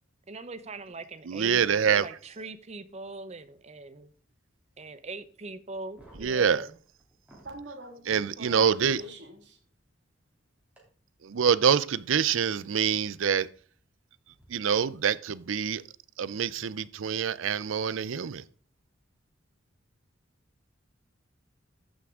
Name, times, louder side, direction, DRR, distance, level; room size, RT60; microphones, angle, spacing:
voice 1, 0.3-4.1 4.8-6.7, right 3 dB, 35° right, 0.7 m, -41 dB
voice 2, 1.3-2.0 6.2-6.6 8.1-9.0 11.2-13.5 14.5-15.8 16.2-18.4, right 7 dB, 85° right, 0.5 m, -25 dB
sound 1, 5.9-7.6 9.0-9.1 10.8-10.9 12.8-12.9 14.3-14.4, right 1 dB, 5° right, 2.8 m, -54 dB
voice 3, 7.4-9.6, right 1 dB, 60° right, 1.9 m, -44 dB
14.0 x 5.9 x 3.7 m
head